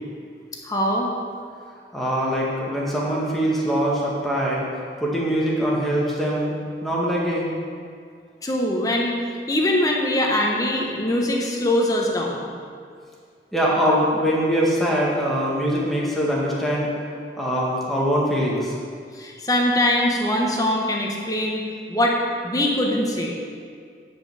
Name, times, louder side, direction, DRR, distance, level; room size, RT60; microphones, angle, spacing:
voice 1, 0.6-1.1 8.4-9.2 9.5-12.5 19.2-21.6 21.9-22.2 22.4-23.3, left 1 dB, 20° left, -1 dB, 1.3 m, -22 dB
voice 2, 1.9-6.6 6.8-7.5 13.5-16.9 17.4-18.8, equal, ahead, -5 dB, 1.9 m, -23 dB
10.5 x 5.6 x 8.0 m, 2.2 s
head